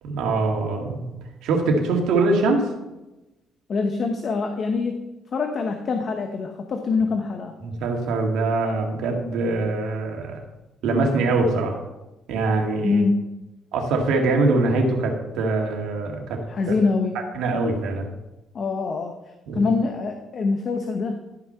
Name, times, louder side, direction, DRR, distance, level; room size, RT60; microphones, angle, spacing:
voice 1, 0.0-1.2 1.4-2.7 7.6-10.4 10.8-11.8 12.3-13.0 13.7-16.4 17.3-18.1 19.5-19.6, right 3 dB, 85° right, 2 dB, 2.2 m, -23 dB
voice 2, 3.7-5.0 5.3-7.5 12.8-13.2 16.5-17.2 18.5-19.2 19.5-21.2, left 4 dB, 45° left, 5 dB, 0.9 m, -24 dB
12.5 x 5.9 x 5.7 m, 1.0 s
cardioid pair, 125°, 0 cm